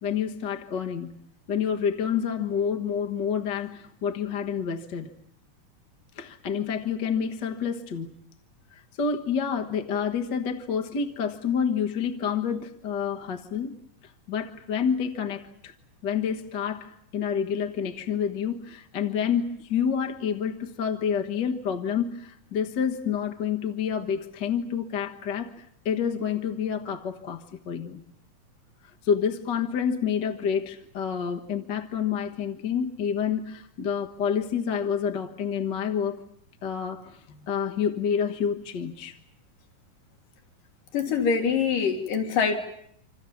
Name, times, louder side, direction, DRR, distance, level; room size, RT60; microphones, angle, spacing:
voice 1, 0.0-1.1 1.5-5.1 6.1-8.2 8.7-13.7 14.3-15.7 16.0-28.0 29.0-36.2 36.6-39.2 41.1-41.2, left 7 dB, 55° left, 4 dB, 1.3 m, -28 dB
voice 2, 40.9-42.6, left 6 dB, 80° left, 4 dB, 3.7 m, -24 dB
26.5 x 26.5 x 7.2 m, 0.68 s
omnidirectional pair, 3.8 m